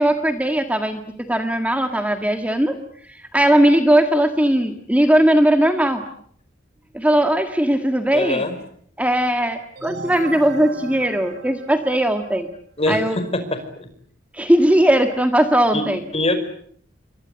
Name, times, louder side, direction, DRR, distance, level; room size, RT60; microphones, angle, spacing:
voice 1, 0.0-2.8 3.2-6.0 6.9-8.5 9.0-12.5 12.9-13.2 14.3-16.0, right 1 dB, 5° right, 6 dB, 1.7 m, -18 dB
voice 2, 8.1-8.6 12.8-13.6 15.7-15.8 16.1-16.4, left 2 dB, 30° left, 9 dB, 5.0 m, -22 dB
sound 1, 9.7-12.4, right 3 dB, 55° right, 4.7 m, -38 dB
28.5 x 24.5 x 7.9 m, 0.62 s
head